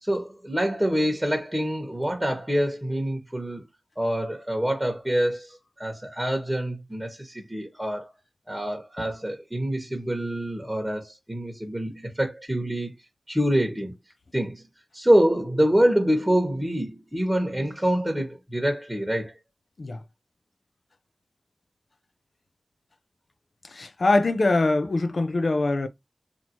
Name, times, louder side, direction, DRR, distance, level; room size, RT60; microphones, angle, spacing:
voice 1, 0.0-3.6 4.0-8.1 8.5-12.9 13.3-13.9 14.3-14.6 14.9-19.3, equal, 10° right, 1.4 m, -26 dB
voice 2, 23.6-25.9, left 2 dB, 75° left, 0.6 m, -23 dB
4.3 x 2.9 x 2.8 m
wide cardioid pair, 50°, 0 cm